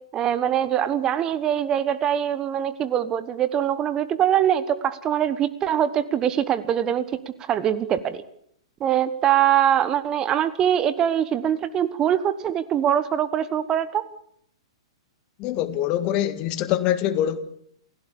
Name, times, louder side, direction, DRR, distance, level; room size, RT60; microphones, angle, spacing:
voice 1, 0.1-7.0 7.4-8.2 8.8-14.1, right 10 dB, 25° right, 1.2 m, -23 dB
voice 2, 15.4-17.4, left 11 dB, 35° left, 1.9 m, -24 dB
29.0 x 16.5 x 6.9 m
figure-of-eight pair, 105°, 3 cm